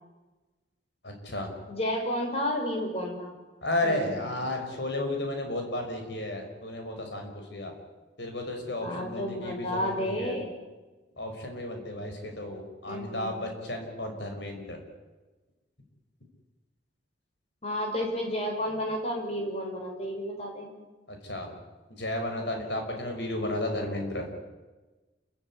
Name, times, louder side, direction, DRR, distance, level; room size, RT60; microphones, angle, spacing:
voice 1, 1.0-1.5 3.6-7.7 8.2-10.4 11.2-14.8 21.2-21.5 22.0-24.3, left 1 dB, 65° left, 4 dB, 6.2 m, -33 dB
voice 2, 1.7-3.3 3.8-4.1 8.8-10.5 12.9-13.3 17.6-20.7 23.7-24.1, equal, 35° left, 2 dB, 6.2 m, -32 dB
29.0 x 15.5 x 9.9 m, 1.2 s
head